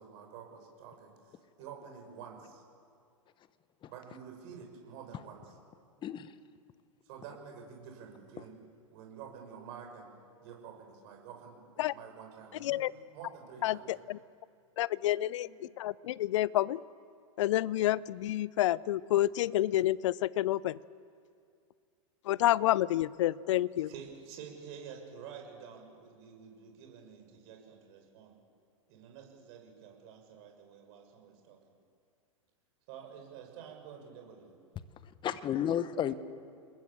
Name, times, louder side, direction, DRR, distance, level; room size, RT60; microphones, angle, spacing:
voice 1, 0.0-2.6 3.9-5.4 7.1-8.6 8.9-12.8 13.1-13.9 15.1-15.6 23.9-28.3 28.9-31.6 32.9-34.5, right 7 dB, 50° right, 2 dB, 7.0 m, -49 dB
voice 2, 6.0-6.3 8.4-8.5 35.2-36.1, left 10 dB, 25° left, 14 dB, 1.2 m, -32 dB
voice 3, 12.6-12.9 13.6-14.2 14.8-16.8 17.4-20.8 22.2-23.9, left 14 dB, 60° left, 21 dB, 0.6 m, -29 dB
29.0 x 21.0 x 7.4 m, 2.3 s
hypercardioid pair, 105°, 18 cm